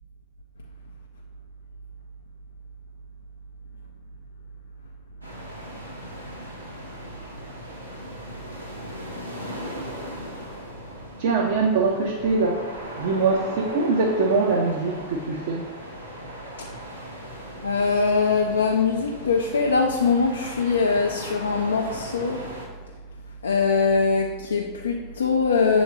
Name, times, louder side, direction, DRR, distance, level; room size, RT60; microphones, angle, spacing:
sound 1, 5.2-22.7, equal, 90° right, 0.9 m, -38 dB
voice 1, 11.2-12.6 13.0-15.7, right 4 dB, 60° right, 0 dB, 0.4 m, -23 dB
voice 2, 17.6-22.4 23.4-25.8, left 4 dB, 75° left, 2 dB, 0.3 m, -22 dB
7.1 x 2.8 x 2.7 m, 1.4 s
figure-of-eight pair, 85°, 0 cm